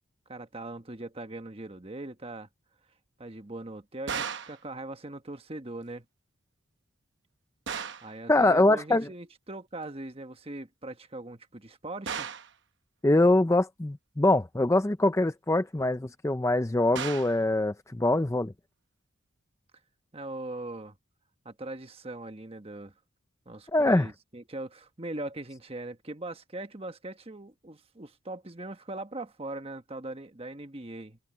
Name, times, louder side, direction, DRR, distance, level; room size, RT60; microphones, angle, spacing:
voice 1, 0.3-2.5 3.2-6.0 8.0-12.3 20.1-21.0 21.4-22.9 23.4-31.2, right 2 dB, 25° right, 1.2 m, -40 dB
sound 1, 4.1-4.6 7.7-8.1 12.1-12.5 16.9-17.4, right 7 dB, 55° right, 0.9 m, -35 dB
voice 2, 8.3-9.1 13.0-18.5 23.7-24.1, left 2 dB, 15° left, 0.5 m, -23 dB
head